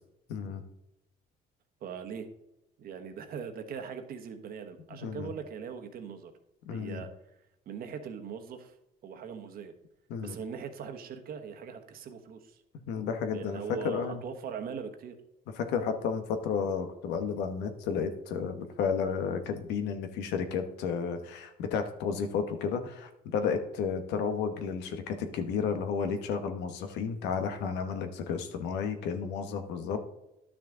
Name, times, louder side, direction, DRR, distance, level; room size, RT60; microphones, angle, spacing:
voice 1, 0.3-0.6 4.9-5.3 6.7-7.0 10.1-10.4 12.9-14.2 15.6-30.0, left 6 dB, 90° left, 8 dB, 1.2 m, -32 dB
voice 2, 1.8-2.3 2.8-6.3 6.7-7.1 7.7-8.7 9.0-9.7 10.2-12.6 13.3-15.2, right 6 dB, 60° right, 6 dB, 1.3 m, -40 dB
11.0 x 6.3 x 3.8 m, 0.87 s
cardioid pair, 110°, 17 cm